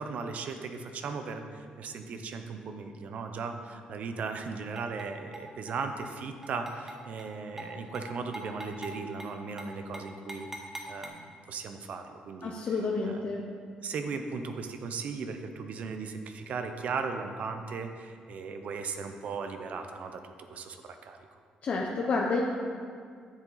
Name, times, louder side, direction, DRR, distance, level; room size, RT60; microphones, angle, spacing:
voice 1, 0.0-10.5 10.9-12.5 13.0-13.2 13.8-20.2 20.5-21.2, right 4 dB, 60° right, 6 dB, 0.7 m, -37 dB
sound 1, 4.8-5.1 5.3-5.8 6.1-6.2 6.4-7.3 7.6-7.7 7.9-8.1 8.3-8.9 9.2-9.3 9.6-9.7 9.9-11.1, right 1 dB, 15° right, 1.2 m, -42 dB
voice 2, 12.4-13.4 21.6-22.4, left 4 dB, 50° left, -1 dB, 0.8 m, -29 dB
9.9 x 7.1 x 4.0 m, 2.1 s
cardioid pair, 100°, 3 cm